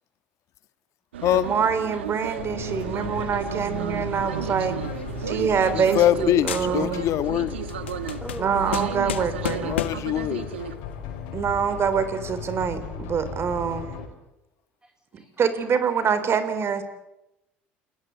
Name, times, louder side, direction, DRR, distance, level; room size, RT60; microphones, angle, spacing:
sound 1, 1.1-10.7, right 9 dB, 90° right, 1.5 m, -33 dB
voice 1, 1.3-4.8 5.2-7.1 8.4-9.8 11.3-13.9 15.1-16.8, right 6 dB, 45° right, 11 dB, 3.8 m, -25 dB
sound 2, 2.4-14.1, left 7 dB, 75° left, 5.5 m, -37 dB
sound 3, 4.8-6.2 6.5-7.1 7.5-10.2, left 9 dB, 90° left, 1.4 m, -33 dB
voice 2, 5.7-7.5 9.6-10.4, left 11 dB, 60° left, 12 dB, 1.6 m, -23 dB
voice 3, 7.7-8.6 14.8-15.5, right 2 dB, 10° right, 4 dB, 3.4 m, -43 dB
29.0 x 20.0 x 8.3 m, 0.90 s
hypercardioid pair, 65°, 6 cm